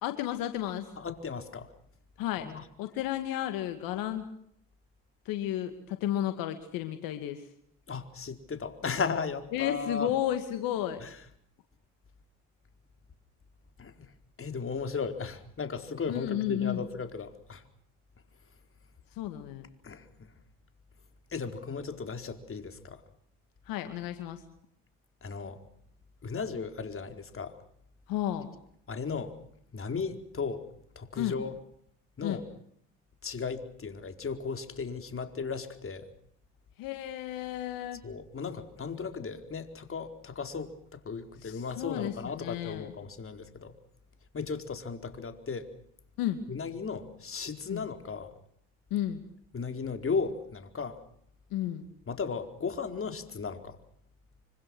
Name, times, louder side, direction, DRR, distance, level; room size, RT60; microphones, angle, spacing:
voice 1, 0.0-0.9 2.2-2.5 2.8-4.2 5.3-7.4 9.5-11.0 16.1-16.8 19.2-19.7 23.7-24.4 28.1-28.5 31.2-31.4 32.2-32.4 36.8-38.0 41.4-42.9 46.2-46.4 47.7-47.9 48.9-49.2 51.5-51.8, left 12 dB, 80° left, 7 dB, 2.4 m, -32 dB
voice 2, 1.0-1.7 2.4-2.6 7.9-10.1 11.0-11.2 13.8-17.7 19.8-20.3 21.3-23.0 25.2-25.6 26.2-27.6 28.9-29.4 29.7-30.7 31.0-31.6 32.2-32.5 33.2-36.1 38.0-43.8 44.3-45.7 46.5-48.3 49.5-51.0 52.1-53.8, left 5 dB, 40° left, 6 dB, 4.5 m, -36 dB
26.0 x 26.0 x 6.3 m, 0.67 s
supercardioid pair, 65°, 34 cm